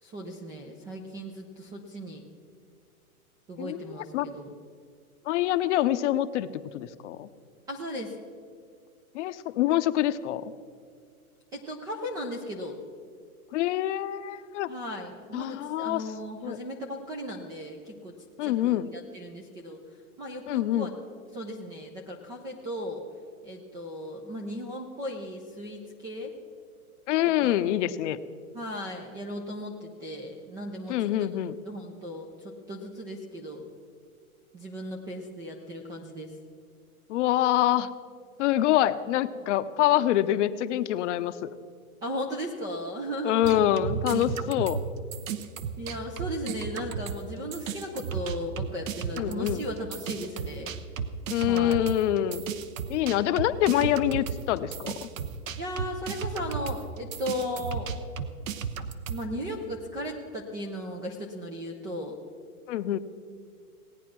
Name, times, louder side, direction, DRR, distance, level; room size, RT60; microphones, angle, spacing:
voice 1, 0.0-2.2 3.5-4.5 7.7-8.2 11.5-12.8 14.7-19.8 20.2-20.9 21.3-23.0 23.4-26.3 27.4-27.6 28.5-31.3 31.6-33.7 34.5-36.3 42.0-43.6 45.8-50.7 51.4-51.8 55.6-57.9 59.1-62.2, equal, 10° right, 2 dB, 0.3 m, -36 dB
voice 2, 3.6-3.9 4.1-4.3 5.3-7.3 9.1-10.5 13.5-14.7 15.3-16.0 16.4-16.6 18.4-18.9 20.5-20.9 27.1-28.2 30.9-31.6 37.1-37.9 38.4-41.5 43.2-44.8 49.2-49.6 51.3-52.4 52.9-55.1 62.7-63.0, left 13 dB, 55° left, 13 dB, 0.7 m, -25 dB
sound 1, 43.4-47.3 47.5-59.2, right 6 dB, 60° right, 1.0 m, -34 dB
17.5 x 9.1 x 6.1 m, 2.1 s
hypercardioid pair, 125°, 44 cm